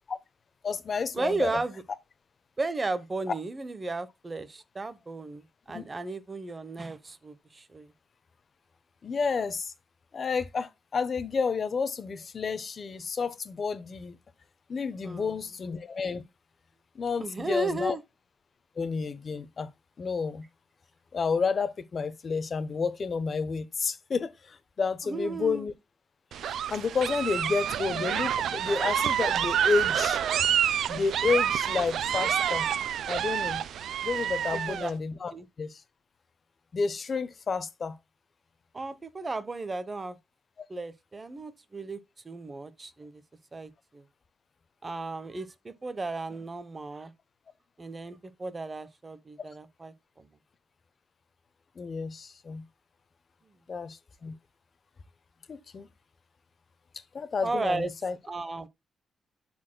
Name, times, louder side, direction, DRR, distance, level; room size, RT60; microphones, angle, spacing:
voice 1, 0.6-1.6 5.7-5.8 9.0-9.7 10.1-14.2 14.7-16.2 16.9-18.0 18.8-19.7 20.0-20.5 21.1-25.7 26.4-30.2 30.9-32.7 33.1-33.6 34.0-35.3 35.6-35.7 36.7-38.0 51.8-52.6 53.7-54.4 55.5-55.9 57.1-58.1, left 5 dB, 45° left, 0.9 m, -30 dB
voice 2, 1.1-1.8 2.6-7.9 15.0-15.4 17.2-18.0 25.0-25.7 34.5-34.9 35.3-35.4 38.7-40.2 40.7-43.2 43.5-44.0 44.8-47.1 47.8-50.3 57.4-57.9 58.3-58.7, right 3 dB, 25° right, 0.9 m, -34 dB
sound 1, 26.3-34.9, right 9 dB, 80° right, 0.5 m, -28 dB
12.0 x 4.3 x 2.2 m
cardioid pair, 100°, 0 cm